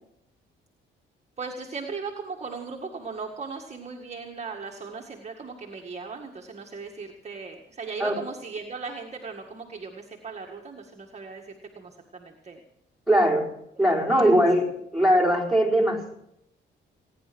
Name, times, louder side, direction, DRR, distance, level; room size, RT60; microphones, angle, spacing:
voice 1, 1.4-12.6 13.8-14.4, right 4 dB, 35° right, 0 dB, 1.9 m, -38 dB
voice 2, 13.1-13.5 13.8-16.1, equal, ahead, -2 dB, 4.7 m, -21 dB
18.5 x 10.0 x 6.2 m, 0.77 s
cardioid pair, 90°, 20 cm